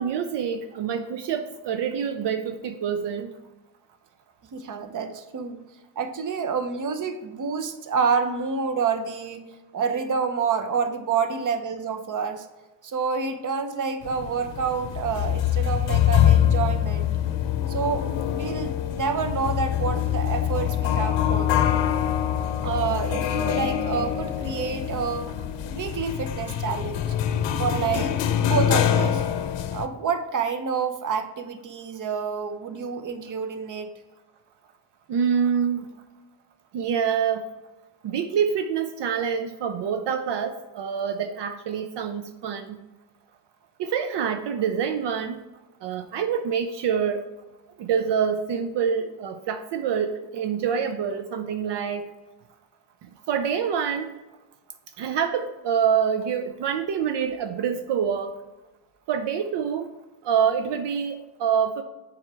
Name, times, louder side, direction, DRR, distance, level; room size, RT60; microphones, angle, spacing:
voice 1, 0.0-3.3 35.1-36.0 36.7-37.5 38.0-42.8 43.8-45.4 45.8-47.2 47.8-52.1 53.3-54.1 55.0-58.3 59.1-59.9 60.2-61.8, right 7 dB, 75° right, 8 dB, 0.6 m, -26 dB
voice 2, 4.5-5.6 6.0-9.4 9.7-12.5 12.8-17.1 17.7-21.5 22.6-25.3 25.6-27.0 27.6-29.2 29.7-33.9, right 6 dB, 45° right, 7 dB, 0.9 m, -28 dB
sound 1, 14.0-29.9, left 10 dB, 90° left, 0.7 m, -24 dB
7.8 x 4.9 x 3.3 m, 1.1 s
cardioid pair, 115°, 42 cm